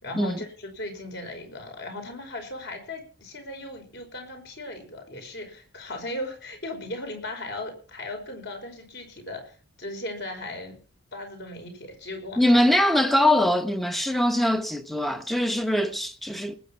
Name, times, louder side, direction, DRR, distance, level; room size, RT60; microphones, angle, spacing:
voice 1, 0.0-10.8 11.1-12.6, left 1 dB, 55° left, 5.2 m, -37 dB
voice 2, 12.4-16.6, left 1 dB, ahead, 1.1 m, -22 dB
19.5 x 8.6 x 5.9 m
head